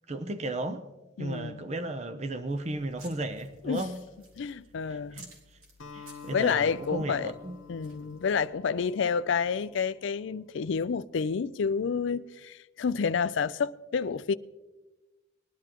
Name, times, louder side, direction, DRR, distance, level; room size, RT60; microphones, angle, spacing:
voice 1, 0.1-0.9 1.2-4.0 4.9-5.6 5.9-7.6, right 1 dB, 30° right, 0.6 m, -35 dB
voice 2, 1.2-1.6 3.6-3.9 4.4-5.2 6.3-7.3 7.7-14.3, left 6 dB, 65° left, 0.4 m, -29 dB
sound 1, 2.5-8.5, right 1 dB, 85° right, 2.8 m, -55 dB
Acoustic guitar, 5.8-10.3, left 6 dB, 80° left, 1.0 m, -49 dB
20.5 x 11.0 x 3.0 m
head